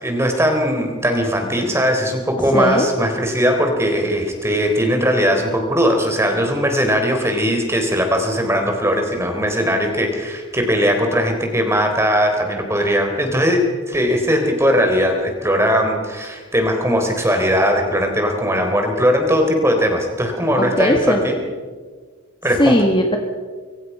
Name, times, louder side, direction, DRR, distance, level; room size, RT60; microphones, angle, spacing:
voice 1, 0.0-21.4 22.4-22.8, equal, 10° right, 4 dB, 3.7 m, -19 dB
voice 2, 2.4-2.9 20.6-21.2 22.6-23.2, left 1 dB, 20° left, 3 dB, 1.8 m, -18 dB
26.0 x 24.0 x 5.6 m, 1.5 s
head